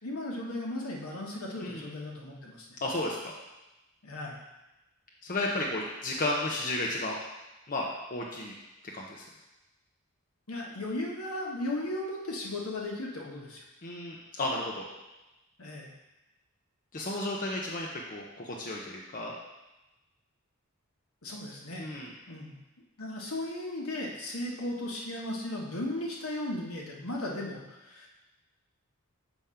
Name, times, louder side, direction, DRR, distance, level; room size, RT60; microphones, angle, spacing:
voice 1, 0.0-2.7 4.0-4.4 10.5-13.6 15.6-15.9 21.2-21.8 22.3-22.5 23.0-28.1, left 1 dB, 75° left, -1 dB, 1.3 m, -36 dB
voice 2, 2.8-3.3 5.2-7.2 7.7-8.5 8.9-9.2 13.8-14.9 16.9-19.3 21.8-22.1, left 2 dB, 40° left, -2 dB, 0.7 m, -33 dB
7.0 x 3.6 x 5.6 m, 1.0 s
head